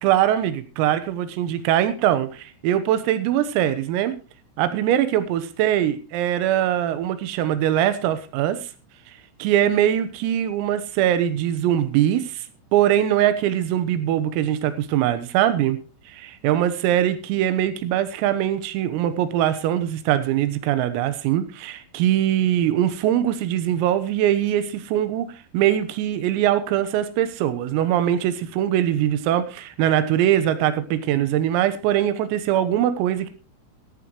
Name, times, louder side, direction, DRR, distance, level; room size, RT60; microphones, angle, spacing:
voice 1, 0.0-4.2 4.6-8.7 9.4-12.4 12.7-15.8 16.1-25.3 25.5-33.3, right 11 dB, 90° right, 12 dB, 3.9 m, -22 dB
15.0 x 14.0 x 3.1 m, 0.33 s
omnidirectional pair, 6.0 m